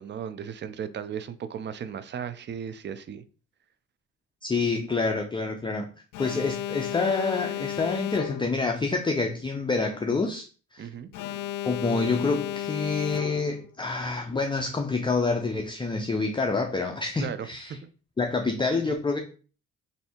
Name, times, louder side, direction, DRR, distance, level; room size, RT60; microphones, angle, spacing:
voice 1, 0.0-3.2 10.8-11.1 17.2-17.9, right 8 dB, 35° right, 0.5 m, -36 dB
voice 2, 4.4-5.9 6.2-10.5 10.7-10.9 11.6-17.8 18.2-19.2, left 3 dB, 15° left, 0.5 m, -27 dB
Alarm, 6.1-8.7 11.1-13.7, left 14 dB, 90° left, 0.5 m, -33 dB
3.2 x 2.7 x 4.3 m
cardioid pair, 90°, 30 cm